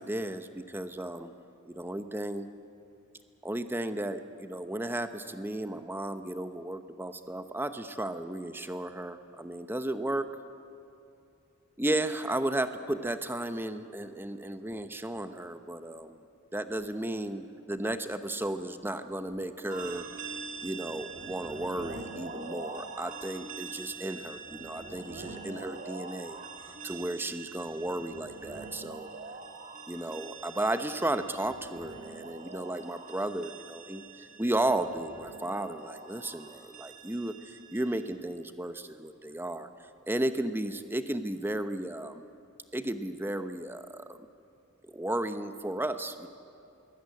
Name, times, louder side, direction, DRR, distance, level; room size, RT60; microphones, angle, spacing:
voice 1, 0.0-1.3 1.7-2.5 3.4-10.3 11.8-16.2 16.5-20.3 20.6-26.4 26.8-29.1 29.9-39.7 40.1-42.3 42.7-44.2 44.8-46.3, right 1 dB, 10° right, 9 dB, 0.9 m, -34 dB
sound 1, 19.7-38.2, right 4 dB, 40° right, 2.1 m, -44 dB
22.0 x 17.0 x 9.6 m, 2.6 s
head